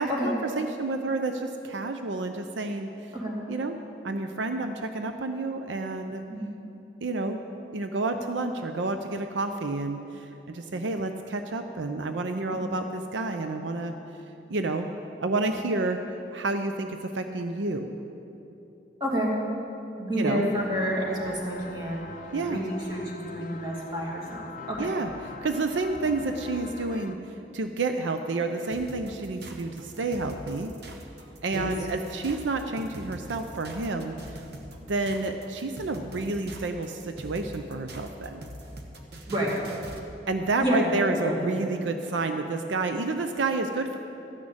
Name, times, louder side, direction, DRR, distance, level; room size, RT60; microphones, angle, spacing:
voice 1, 0.0-2.9 3.5-3.8 4.0-6.2 7.0-7.4 7.7-13.9 14.5-14.9 15.2-16.0 16.3-17.9 20.1-20.5 22.3-22.6 24.8-25.1 25.4-27.2 27.5-30.7 31.4-34.4 34.9-38.4 40.3-44.0, right 3 dB, 80° right, 6 dB, 0.6 m, -29 dB
voice 2, 19.0-19.3 20.0-22.1 22.5-24.9 31.5-31.7 36.0-36.2 39.3-39.6 40.6-40.8 41.2-41.4, equal, 25° right, -4 dB, 2.4 m, -29 dB
sound 1, 20.5-27.2, left 3 dB, 45° left, 0.5 m, -43 dB
sound 2, 28.7-40.1, right 1 dB, 60° right, 1.2 m, -43 dB
13.0 x 6.2 x 8.7 m, 2.9 s
head